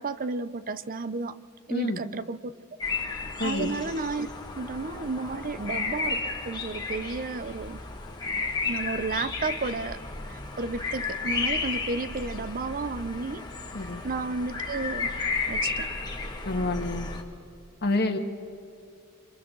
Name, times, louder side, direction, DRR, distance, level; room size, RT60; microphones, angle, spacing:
voice 1, 0.0-1.4 1.7-2.5 3.1-4.3 4.5-7.8 8.6-10.0 10.3-13.4 14.0-15.1 15.5-16.0, right 3 dB, 40° right, 14 dB, 0.7 m, -32 dB
voice 2, 1.7-2.0 3.4-3.7 13.7-14.0 16.4-17.1 17.8-18.2, left 2 dB, 50° left, 5 dB, 1.6 m, -28 dB
sound 1, 2.8-17.2, left 4 dB, 20° left, 1.9 m, -33 dB
28.0 x 26.0 x 3.9 m, 2.5 s
head